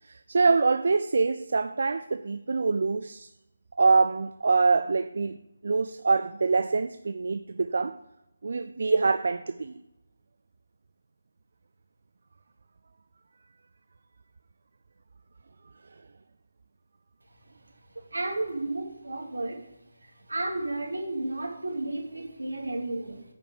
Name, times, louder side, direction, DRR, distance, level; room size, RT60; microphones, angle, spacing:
voice 1, 0.0-3.3 3.8-5.4 5.6-8.0 8.4-9.8, right 4 dB, 55° right, 10 dB, 0.4 m, -25 dB
voice 2, 18.0-19.6 20.0-23.2, right 2 dB, 75° right, 1 dB, 2.4 m, -33 dB
9.2 x 5.1 x 7.9 m, 0.87 s
figure-of-eight pair, 150°, 0 cm